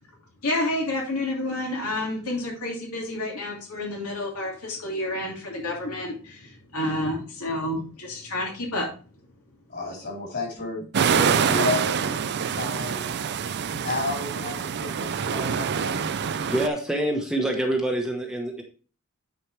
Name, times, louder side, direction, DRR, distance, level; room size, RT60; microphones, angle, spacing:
voice 1, 0.4-8.9, left 1 dB, 85° left, -1 dB, 2.6 m, -29 dB
voice 2, 9.7-13.0 13.8-16.1, left 2 dB, 50° left, -1 dB, 4.1 m, -32 dB
sound 1, 10.9-16.7, right 7 dB, 50° right, 0.4 m, -26 dB
voice 3, 16.1-18.6, right 1 dB, 5° right, 1 dB, 1.0 m, -26 dB
9.6 x 4.9 x 3.3 m, 0.38 s
head